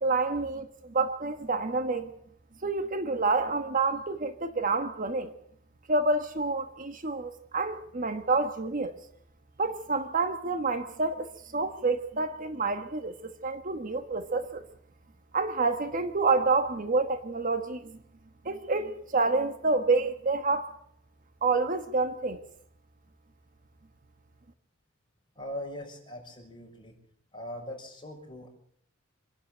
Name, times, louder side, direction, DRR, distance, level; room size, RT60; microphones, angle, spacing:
voice 1, 0.0-2.1 2.6-5.3 5.9-9.0 9.6-14.6 15.3-18.0 18.4-20.7 21.4-22.4, right 3 dB, 40° right, 8 dB, 1.3 m, -28 dB
voice 2, 25.4-26.9 27.3-28.5, left 1 dB, 25° left, 1 dB, 6.2 m, -40 dB
26.5 x 11.5 x 9.0 m, 0.69 s
head